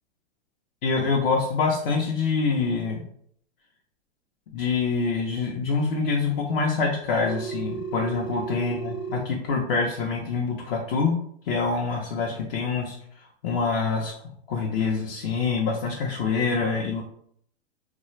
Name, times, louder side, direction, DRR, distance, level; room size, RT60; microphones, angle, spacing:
voice 1, 0.8-3.0 4.5-11.2 11.5-13.0 13.4-14.1 14.5-17.0, left 4 dB, 60° left, -1 dB, 0.7 m, -25 dB
Telephone, 7.2-9.2, right 6 dB, 5° left, 0.4 m, -33 dB
2.4 x 2.2 x 3.1 m, 0.64 s
hypercardioid pair, 115°, 33 cm